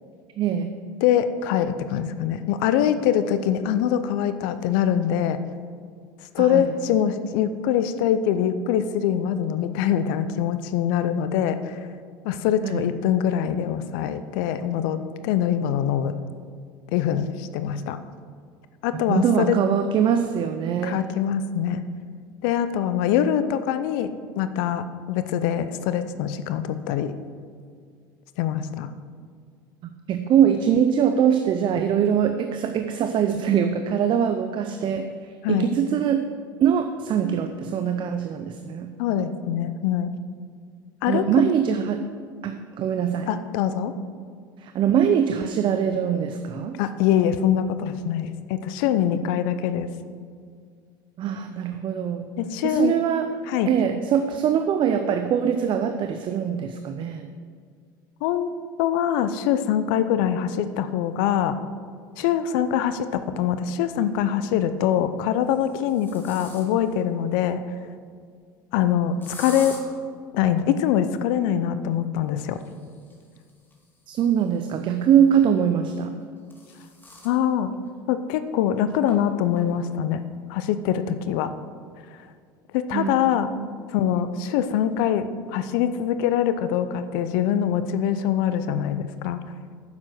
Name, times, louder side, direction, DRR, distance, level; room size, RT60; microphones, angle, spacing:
voice 1, 0.4-0.8 6.4-6.7 12.6-13.0 19.1-21.1 29.8-36.3 36.6-38.9 41.1-42.1 42.4-43.3 44.6-46.8 51.2-52.2 52.6-53.3 53.7-57.3 74.1-76.1 82.9-83.7, right 8 dB, 45° right, 7 dB, 0.7 m, -23 dB
voice 2, 1.0-5.4 6.3-11.8 12.2-15.0 15.2-16.1 16.9-18.0 18.8-19.6 20.8-21.8 22.4-27.1 28.4-28.9 35.4-35.7 39.0-40.1 41.0-41.3 43.3-43.9 46.8-49.9 52.4-52.9 53.5-53.7 58.2-58.5 58.8-61.6 62.2-67.6 68.7-69.8 70.3-72.6 77.2-77.7 78.1-80.2 80.5-81.5 82.7-83.5 83.9-89.4, left 9 dB, 65° left, 11 dB, 0.6 m, -23 dB
sound 1, 62.8-62.9 64.4-64.8 65.4-67.0 69.2-69.8 72.4-75.0 76.0-77.4 77.9-78.0 78.3-78.4 79.1-79.2 79.6-79.9, left 2 dB, 15° left, 2.4 m, -45 dB
9.6 x 7.3 x 6.3 m, 2.1 s
hypercardioid pair, 75°, 12 cm